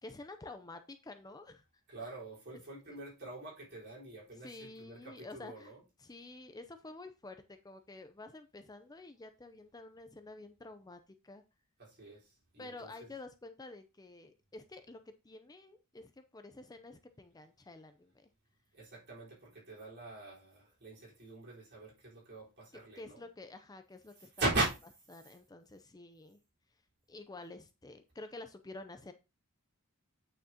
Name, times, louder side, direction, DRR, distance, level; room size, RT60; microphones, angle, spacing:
voice 1, 0.0-1.6 2.9-3.0 4.4-5.7 6.0-11.4 12.6-15.0 15.2-18.3 23.0-24.3 25.1-26.4 27.1-29.1, left 2 dB, 15° left, 0.6 m, -50 dB
voice 2, 1.9-5.8 11.8-12.9 18.7-23.2 24.2-24.7, right 2 dB, 50° right, 4.2 m, -40 dB
8.7 x 6.5 x 2.9 m
head